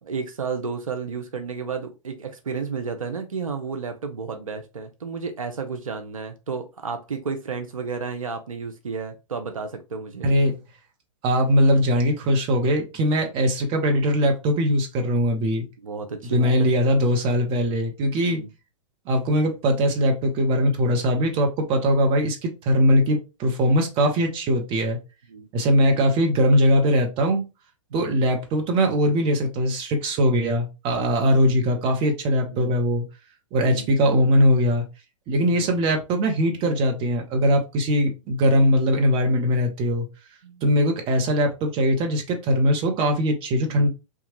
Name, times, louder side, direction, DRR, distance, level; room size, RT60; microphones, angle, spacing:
voice 1, 0.0-10.3 15.8-16.7 18.3-18.5 25.3-25.5 27.9-28.2 32.5-32.7 33.6-33.9 35.5-35.8 40.4-40.7 43.7-43.9, right 5 dB, 85° right, 0.5 m, -32 dB
voice 2, 10.2-10.5 11.2-15.7 16.2-18.4 19.1-25.0 25.5-27.4 27.9-33.1 33.5-34.8 35.3-40.1 40.6-43.9, equal, 30° right, 0.8 m, -21 dB
2.9 x 2.3 x 2.9 m
figure-of-eight pair, 110°, 17 cm